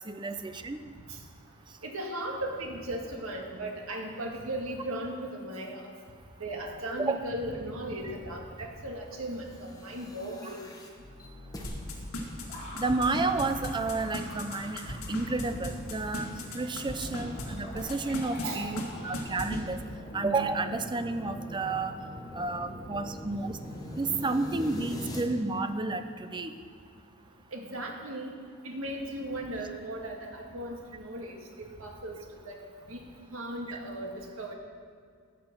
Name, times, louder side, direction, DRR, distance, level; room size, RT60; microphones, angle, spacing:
voice 1, 0.1-0.8 7.0-7.2 12.7-19.8 20.1-21.9 22.3-23.6 24.0-26.5 33.7-33.8, right 3 dB, 20° right, 9 dB, 0.5 m, -31 dB
voice 2, 1.8-5.9 6.4-10.6 18.4-18.7 27.5-28.3 28.6-32.2 32.5-32.6 32.9-33.0 33.3-34.5, right 1 dB, 70° right, 1 dB, 1.8 m, -37 dB
sound 1, 9.4-25.2, equal, 15° left, 1.2 m, -44 dB
sound 2, 11.6-17.4 17.8-18.5 18.8-18.9 19.1-19.6, left 1 dB, 85° left, 1.8 m, -36 dB
sound 3, 12.4-19.7, left 1 dB, 35° left, 3.4 m, -47 dB
15.5 x 6.0 x 6.0 m, 2.1 s
head